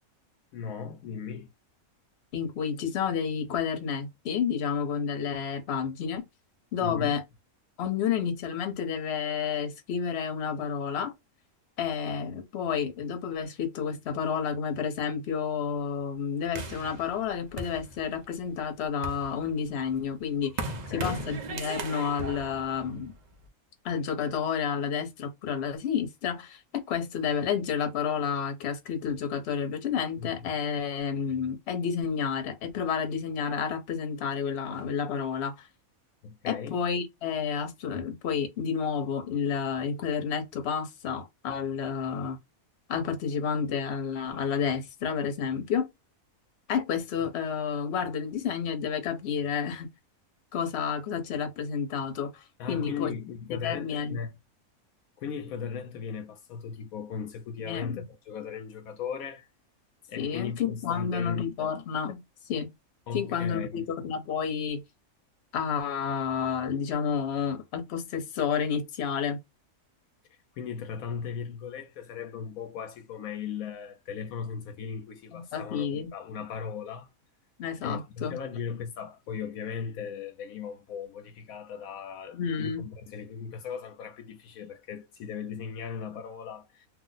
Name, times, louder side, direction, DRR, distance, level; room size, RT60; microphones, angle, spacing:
voice 1, 0.5-1.5 6.8-7.1 20.7-21.3 30.2-30.5 36.2-36.8 52.6-54.3 55.2-59.5 60.1-61.7 63.1-63.9 70.6-77.1 77.8-86.9, left 6 dB, 80° left, 1.0 m, -37 dB
voice 2, 2.3-6.3 6.7-7.2 7.8-11.1 11.8-23.1 23.8-35.7 36.5-42.4 42.9-45.9 46.7-49.9 50.5-53.1 53.6-54.2 57.7-58.0 60.2-62.2 62.5-62.7 63.1-64.8 65.5-69.4 75.3-76.1 77.6-78.4 82.3-82.8, left 7 dB, 55° left, 1.0 m, -30 dB
sound 1, 16.5-18.4 18.8-23.5, right 3 dB, 65° right, 0.4 m, -38 dB
2.7 x 2.0 x 3.9 m
omnidirectional pair, 1.5 m